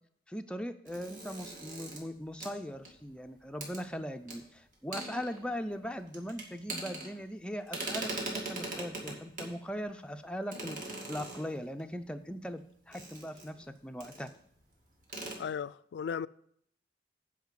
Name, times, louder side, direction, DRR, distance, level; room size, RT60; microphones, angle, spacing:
voice 1, 0.3-14.3, equal, 5° left, 0.4 m, -40 dB
sound 1, 0.9-3.2 3.6-3.8 4.3-4.4 4.7-5.7 6.1-7.4 7.7-9.6 10.5-11.8 12.9-13.7 14.0-14.3 14.6-14.7 15.0-15.4, right 2 dB, 50° right, 2.2 m, -41 dB
voice 2, 15.4-16.3, left 7 dB, 80° left, 0.3 m, -36 dB
9.3 x 5.1 x 7.4 m
head